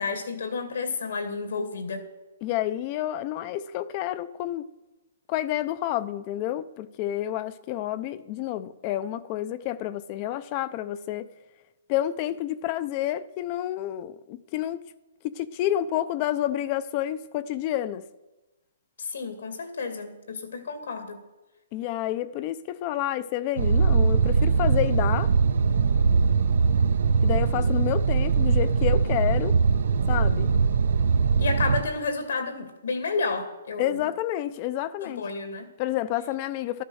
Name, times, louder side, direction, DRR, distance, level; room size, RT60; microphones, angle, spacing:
voice 1, 0.0-2.1 19.0-21.2 31.4-34.0 35.0-35.7, left 4 dB, 75° left, 2.4 m, -31 dB
voice 2, 2.4-4.7 5.3-11.3 11.9-14.8 15.2-18.0 21.7-25.3 27.2-29.6 30.1-30.5 33.8-35.2 35.8-36.8, left 13 dB, 30° left, 0.5 m, -29 dB
sound 1, 23.6-31.8, right 5 dB, 70° right, 0.7 m, -21 dB
12.5 x 11.0 x 6.3 m
hypercardioid pair, 160°, 0 cm